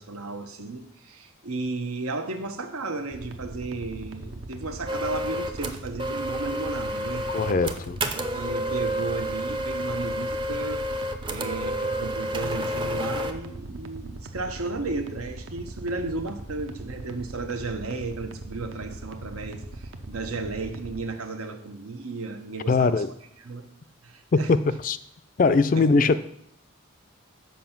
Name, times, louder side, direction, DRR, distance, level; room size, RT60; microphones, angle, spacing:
voice 1, 0.0-7.3 8.3-10.8 11.3-23.0 23.4-23.7 24.0-24.5 25.7-26.1, right 3 dB, 90° right, 1.0 m, -34 dB
sound 1, 3.1-21.0, right 2 dB, 65° right, 0.7 m, -40 dB
sound 2, 4.9-13.3, equal, 20° right, 0.5 m, -30 dB
voice 2, 7.3-8.0 22.7-23.1 24.3-25.0 25.4-26.2, left 4 dB, 40° left, 0.3 m, -21 dB
7.2 x 5.4 x 5.8 m
head